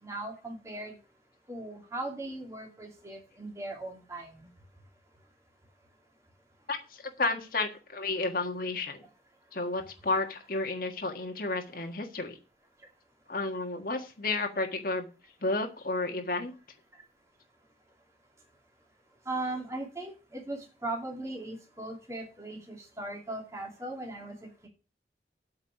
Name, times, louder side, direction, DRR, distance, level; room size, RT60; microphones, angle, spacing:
voice 1, 0.0-0.9 1.5-4.5 19.3-24.7, right 2 dB, 15° right, 0 dB, 2.5 m, -38 dB
voice 2, 6.7-9.0 9.5-12.4 13.3-15.1 15.4-16.5, left 3 dB, 50° left, 3 dB, 1.6 m, -32 dB
8.8 x 5.7 x 8.1 m, 0.33 s
head